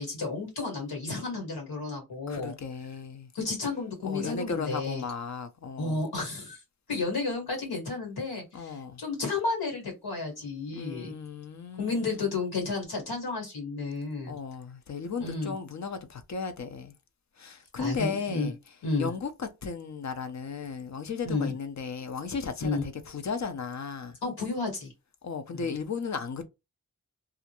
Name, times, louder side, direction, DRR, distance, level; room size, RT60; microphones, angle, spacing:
voice 1, 0.0-2.5 3.3-5.0 5.8-6.6 6.9-11.1 11.8-14.4 15.2-15.5 17.8-18.5 18.8-19.1 21.2-21.5 22.6-22.8 24.2-24.9 25.5-25.7, left 3 dB, 85° left, 1.5 m, -32 dB
voice 2, 2.3-3.3 4.0-6.0 8.5-9.0 10.7-12.3 14.3-16.9 17.4-18.6 19.0-24.2 25.2-26.4, left 5 dB, 50° left, 0.6 m, -35 dB
2.4 x 2.1 x 2.8 m
cardioid pair, 50°, 37 cm